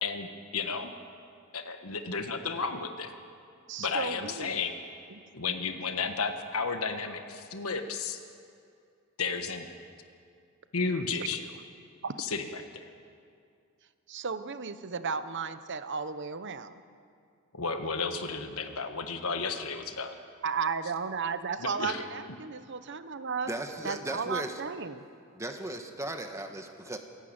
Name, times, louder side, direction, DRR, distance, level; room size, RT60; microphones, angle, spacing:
voice 1, 0.0-0.9 1.5-3.1 3.8-4.8 5.3-8.2 9.2-9.7 10.7-11.4 12.2-12.8 17.5-20.2 21.6-22.0, left 4 dB, 80° left, 6 dB, 1.5 m, -33 dB
voice 2, 3.7-4.6 5.1-5.2 12.0-12.1 14.1-16.8 20.4-23.5 23.8-25.0, right 5 dB, 55° right, 11 dB, 1.0 m, -34 dB
voice 3, 23.5-24.6 25.3-27.0, right 1 dB, 15° right, 5 dB, 1.3 m, -36 dB
26.5 x 11.5 x 8.9 m, 2.3 s
head